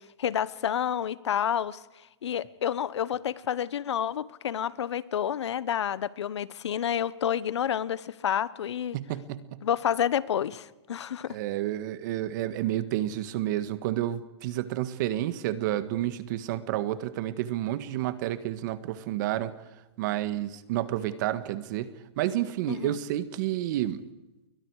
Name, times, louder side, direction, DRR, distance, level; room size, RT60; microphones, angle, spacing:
voice 1, 0.2-1.8 2.2-9.0 9.6-11.4 22.7-23.0, left 9 dB, 80° left, 18 dB, 1.1 m, -29 dB
voice 2, 8.9-9.6 11.3-19.5 20.0-21.9 22.2-24.0, right 13 dB, 45° right, 13 dB, 1.6 m, -30 dB
29.0 x 23.0 x 4.9 m, 1.0 s
hypercardioid pair, 155°, 14 cm